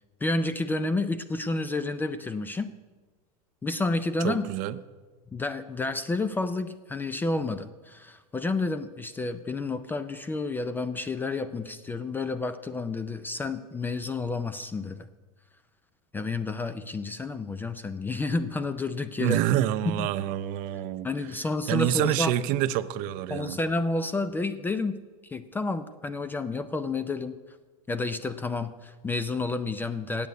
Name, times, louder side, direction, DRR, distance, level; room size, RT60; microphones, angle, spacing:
voice 1, 0.2-2.7 3.6-4.5 5.3-15.1 16.1-19.4 20.0-20.1 21.0-22.3 23.3-25.0 25.3-27.4 27.9-30.3, left 3 dB, 10° left, 12 dB, 0.4 m, -30 dB
voice 2, 4.2-4.8 19.2-21.1 21.7-23.6, right 13 dB, 45° right, 13 dB, 0.5 m, -27 dB
8.4 x 8.3 x 9.1 m, 1.3 s
supercardioid pair, 135°, 19 cm